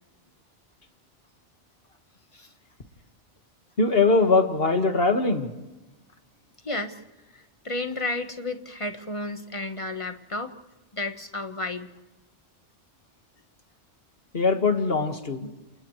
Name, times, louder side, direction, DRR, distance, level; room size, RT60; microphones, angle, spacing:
voice 1, 3.8-5.5 14.3-15.5, left 3 dB, 50° left, 6 dB, 2.0 m, -21 dB
voice 2, 6.6-7.0 7.3-10.5 10.9-11.9, left 2 dB, 25° left, 7 dB, 1.4 m, -32 dB
29.5 x 28.0 x 3.3 m, 1.0 s
omnidirectional pair, 1.2 m